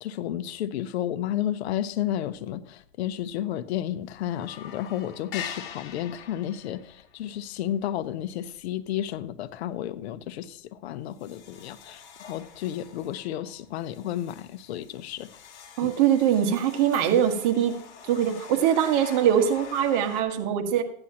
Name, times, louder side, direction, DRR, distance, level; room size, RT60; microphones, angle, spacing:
voice 1, 0.0-12.0 12.3-15.3 15.8-15.9, left 11 dB, 65° left, 0.8 m, -32 dB
sound 1, 2.8-2.9 3.2-3.8 4.1-9.4 9.7-10.0 10.5-10.6 11.1-20.2, left 7 dB, 45° left, 2.1 m, -44 dB
voice 2, 15.8-17.8 18.0-20.8, right 9 dB, 45° right, 1.6 m, -22 dB
14.5 x 9.7 x 2.9 m
hypercardioid pair, 125°, 34 cm